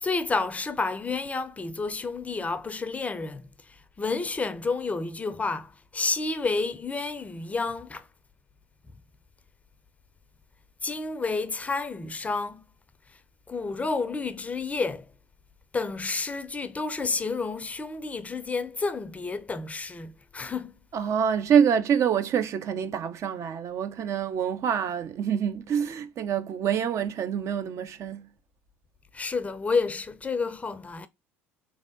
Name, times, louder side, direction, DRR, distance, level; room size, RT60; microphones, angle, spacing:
voice 1, 0.0-8.1 10.8-12.6 13.5-15.1 15.7-20.8 29.1-31.1, left 4 dB, 20° left, 0.5 m, -30 dB
voice 2, 20.9-28.3, right 8 dB, 45° right, 0.5 m, -26 dB
3.5 x 3.2 x 2.5 m
hypercardioid pair, 70°, 7 cm